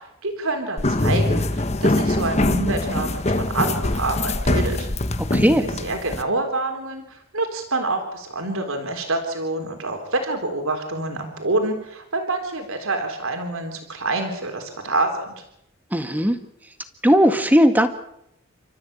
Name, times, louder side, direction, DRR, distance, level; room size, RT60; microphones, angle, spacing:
voice 1, 0.2-4.9 5.6-15.4, right 2 dB, 75° right, 5 dB, 3.7 m, -27 dB
sound 1, 0.8-6.2, left 1 dB, 30° left, 1.2 m, -23 dB
voice 2, 5.3-5.6 15.9-16.4 17.0-17.9, equal, 10° right, 8 dB, 1.8 m, -17 dB
29.5 x 14.0 x 8.7 m, 0.79 s
head